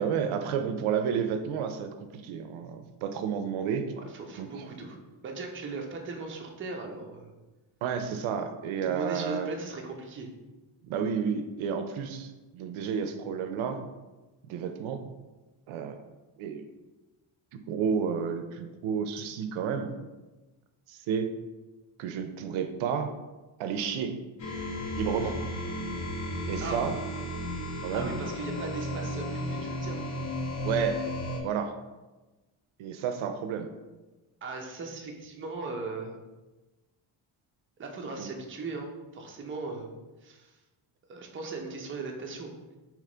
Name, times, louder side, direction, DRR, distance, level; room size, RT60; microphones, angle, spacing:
voice 1, 0.0-3.9 4.4-4.5 7.8-9.5 10.8-13.8 14.5-15.0 15.7-16.0 16.4-16.6 17.5-19.9 20.9-21.3 22.0-23.1 23.6-24.2 25.0-25.4 26.5-27.0 27.8-28.1 30.6-31.0 31.4-31.7 32.8-33.7 38.2-38.3, right 7 dB, 85° right, 8 dB, 0.5 m, -31 dB
voice 2, 4.0-5.0 5.2-7.3 8.8-10.3 25.2-25.3 26.6-26.9 27.9-30.0 34.4-36.1 37.8-39.9 40.2-40.5 41.1-42.5, right 3 dB, 25° right, 1 dB, 0.5 m, -38 dB
sound 1, 24.4-31.4, left 1 dB, 35° left, 0.7 m, -34 dB
3.3 x 3.0 x 3.8 m, 1.1 s
cardioid pair, 135°, 48 cm